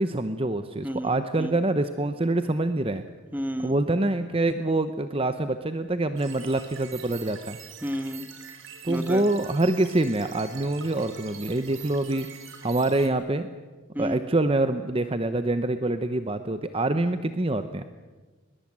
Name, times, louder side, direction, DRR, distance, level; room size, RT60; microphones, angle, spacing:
voice 1, 0.0-3.0 3.6-7.6 8.8-12.3 12.6-13.5 14.0-17.8, right 2 dB, 25° right, 10 dB, 0.8 m, -25 dB
voice 2, 0.8-1.5 3.3-3.8 7.8-8.3 8.9-9.3 13.9-14.2, equal, 10° right, 9 dB, 1.3 m, -31 dB
sound 1, 6.2-13.1, right 8 dB, 65° right, 3.5 m, -45 dB
21.5 x 21.0 x 8.7 m, 1.3 s
head